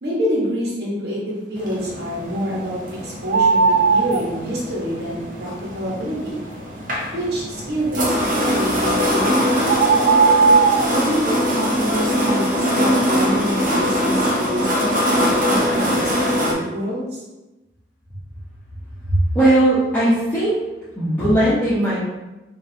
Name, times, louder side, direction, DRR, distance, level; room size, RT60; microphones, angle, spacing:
voice 1, 0.0-6.4 7.1-9.8 10.9-17.2, equal, 60° right, -6 dB, 1.5 m, -27 dB
sound 1, 1.6-16.5, equal, 45° right, 0.7 m, -22 dB
sound 2, 3.3-4.2 8.8-9.0 9.7-10.9, right 5 dB, 90° right, 0.3 m, -16 dB
voice 2, 19.1-20.5 21.0-22.0, right 1 dB, 10° left, -13 dB, 1.1 m, -18 dB
5.4 x 2.8 x 2.8 m, 1.1 s
head